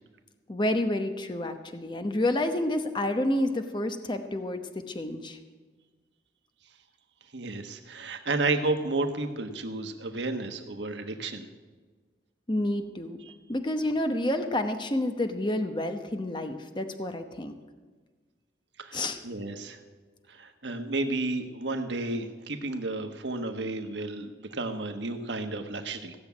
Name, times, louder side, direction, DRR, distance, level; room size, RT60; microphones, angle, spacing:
voice 1, 0.5-5.4 12.5-13.2 13.5-17.6 18.9-19.2, left 1 dB, 25° left, 7 dB, 0.9 m, -29 dB
voice 2, 7.3-11.5 13.2-13.3 18.8-19.8 20.3-26.1, right 2 dB, 80° right, 6 dB, 1.3 m, -32 dB
16.0 x 7.2 x 9.3 m, 1.4 s
head